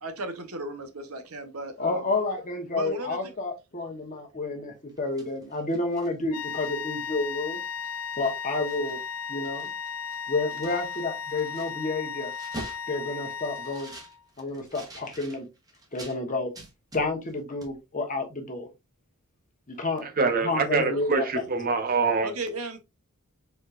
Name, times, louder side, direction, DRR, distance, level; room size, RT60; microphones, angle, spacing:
voice 1, 0.0-2.1 2.7-3.3 20.9-21.2 22.2-22.8, right 2 dB, 70° right, 1.0 m, -35 dB
voice 2, 1.8-7.6 8.2-9.0 9.3-9.7 10.3-12.3 12.9-13.9 14.4-15.4 15.9-16.5 16.9-18.7 19.7-21.3, left 3 dB, 35° left, 1.3 m, -30 dB
sound 1, 4.9-7.0 7.4-7.5 7.8-9.1 9.3-16.2 16.5-17.4 17.6-17.7, right 2 dB, 15° right, 1.4 m, -46 dB
sound 2, 6.3-14.2, left 6 dB, 80° left, 0.7 m, -35 dB
voice 3, 20.0-22.3, right 4 dB, 40° right, 0.9 m, -25 dB
4.6 x 4.2 x 2.5 m
head